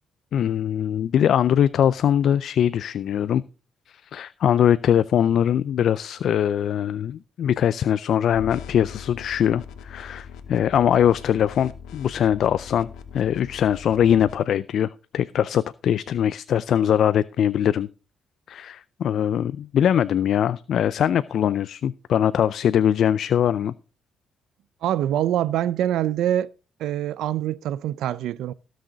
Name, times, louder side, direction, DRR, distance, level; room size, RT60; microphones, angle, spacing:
voice 1, 0.3-3.4 3.9-12.9 13.1-17.9 18.5-23.7, left 9 dB, 65° left, 0.4 m, -22 dB
sound 1, 8.3-14.3, left 7 dB, 90° left, 1.3 m, -41 dB
voice 2, 24.8-26.5 26.8-28.5, right 11 dB, 85° right, 0.4 m, -24 dB
17.5 x 6.4 x 3.9 m
cardioid pair, 90°, 0 cm